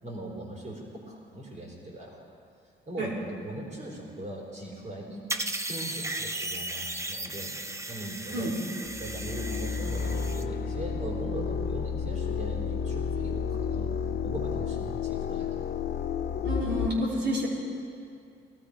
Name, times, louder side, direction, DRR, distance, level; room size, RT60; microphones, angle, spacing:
voice 1, 0.0-2.2 2.8-5.2 5.7-8.5 9.0-13.9 14.2-15.7, right 1 dB, 35° right, -2 dB, 4.1 m, -40 dB
sound 1, 5.3-10.4, right 2 dB, 15° right, 0.8 m, -36 dB
sound 2, 8.9-16.9, left 6 dB, 55° left, 0.7 m, -31 dB
voice 2, 16.4-17.5, equal, 60° right, -4 dB, 4.2 m, -29 dB
18.0 x 13.5 x 5.1 m, 2.4 s
cardioid pair, 90°, 20 cm